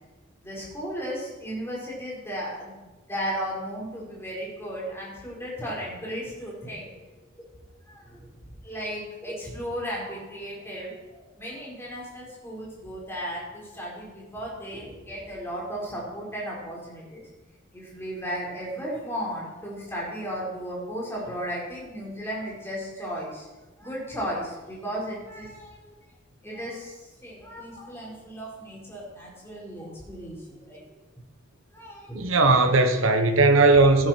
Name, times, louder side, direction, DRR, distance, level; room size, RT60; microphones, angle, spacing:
voice 1, 0.4-2.8 3.1-7.0 7.9-8.3 8.6-10.9 11.3-17.2 17.7-23.5 23.8-25.9 26.4-30.8 31.7-32.5, equal, 10° left, 5.0 m, -35 dB
voice 2, 32.1-34.1, right 3 dB, 80° right, 1.3 m, -18 dB
17.0 x 10.5 x 4.7 m
head